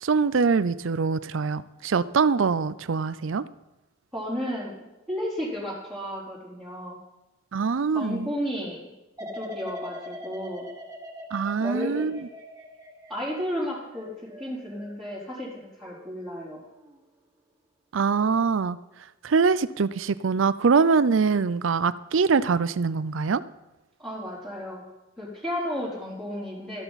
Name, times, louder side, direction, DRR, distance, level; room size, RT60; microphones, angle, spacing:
voice 1, 0.0-3.4 7.5-8.3 11.3-12.2 17.9-18.8 19.2-23.4, right 5 dB, 70° right, 16 dB, 0.5 m, -23 dB
voice 2, 4.1-7.0 7.9-8.8 9.3-10.7 11.6-12.1 13.1-16.6 24.0-24.8 25.2-26.8, equal, ahead, -8 dB, 3.9 m, -33 dB
sound 1, 9.2-16.1 16.5-17.0, equal, 15° right, 1.4 m, -43 dB
13.5 x 12.5 x 4.1 m, 1.0 s
head